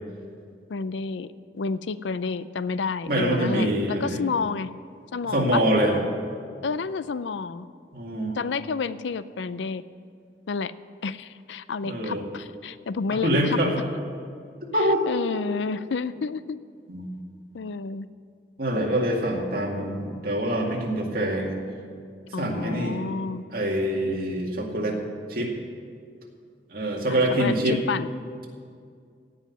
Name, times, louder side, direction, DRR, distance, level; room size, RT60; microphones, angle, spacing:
voice 1, 0.7-1.3 1.5-4.7 5.1-5.6 6.6-7.7 8.3-9.8 10.5-10.7 11.0-13.6 14.8-16.6 17.5-18.1 22.3-23.4 27.1-28.1, left 4 dB, 80° left, 15 dB, 0.5 m, -30 dB
voice 2, 3.1-4.2 5.3-6.0 7.9-8.4 11.8-12.2 13.1-13.7 14.7-15.1 16.9-17.2 18.6-21.6 22.4-23.0 23.5-25.0 25.3-25.5 26.7-27.8, right 1 dB, 55° right, -1 dB, 2.3 m, -25 dB
16.5 x 5.7 x 9.7 m, 2.2 s
head